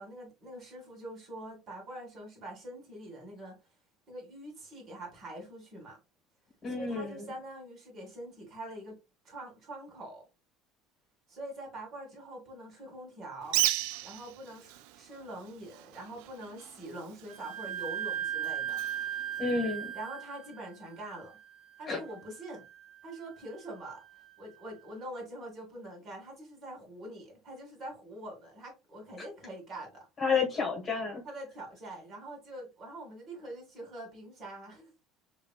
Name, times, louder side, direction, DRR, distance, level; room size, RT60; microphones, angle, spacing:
voice 1, 0.0-3.6 4.1-6.0 6.7-9.0 9.2-10.2 11.3-13.6 14.0-18.8 19.9-21.4 21.8-22.6 23.0-24.0 24.4-30.1 31.2-34.9, right 1 dB, 40° right, 2.1 m, -44 dB
voice 2, 6.6-7.2 19.4-19.9 21.8-22.0 30.2-31.2, left 4 dB, 25° left, 1.4 m, -30 dB
Bird, 13.4-20.1, right 16 dB, 80° right, 0.3 m, -37 dB
Wind instrument woodwind instrument, 17.3-24.7, right 10 dB, 55° right, 2.0 m, -39 dB
4.6 x 3.0 x 2.3 m
cardioid pair, 145°, 0 cm